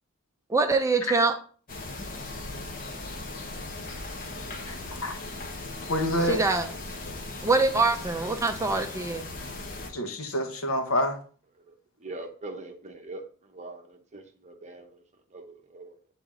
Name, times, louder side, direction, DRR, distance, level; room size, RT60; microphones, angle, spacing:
voice 1, 0.5-1.3 6.3-6.7 7.4-9.3, right 3 dB, 15° right, 5 dB, 0.6 m, -24 dB
sound 1, 1.7-9.9, left 2 dB, 40° left, 1.0 m, -38 dB
voice 2, 4.7-5.2 5.9-6.4 9.9-11.2, left 1 dB, 75° left, 4 dB, 1.3 m, -27 dB
voice 3, 12.0-15.0 15.3-16.0, right 2 dB, 35° right, 4 dB, 1.0 m, -42 dB
8.5 x 4.0 x 3.8 m, 0.42 s
head